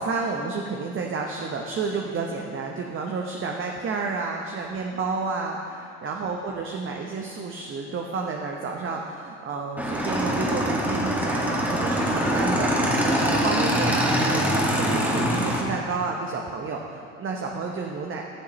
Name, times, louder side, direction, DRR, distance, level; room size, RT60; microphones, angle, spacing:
voice 1, 0.0-18.2, right 4 dB, 35° right, 1 dB, 0.9 m, -30 dB
Motorcycle / Engine, 9.8-15.6, equal, 5° right, 1.8 m, -23 dB
14.5 x 7.2 x 3.1 m, 2.4 s
hypercardioid pair, 70°, 37 cm